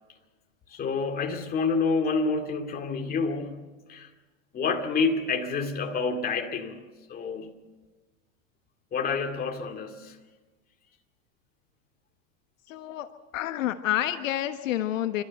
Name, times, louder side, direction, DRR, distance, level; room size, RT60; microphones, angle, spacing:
voice 1, 0.7-4.1 4.5-6.8 7.1-7.5 8.9-10.2, left 4 dB, 20° left, 4 dB, 2.3 m, -28 dB
voice 2, 12.7-15.2, left 12 dB, 75° left, 9 dB, 1.3 m, -29 dB
29.5 x 13.0 x 7.9 m, 1.3 s
hypercardioid pair, 130°, 40 cm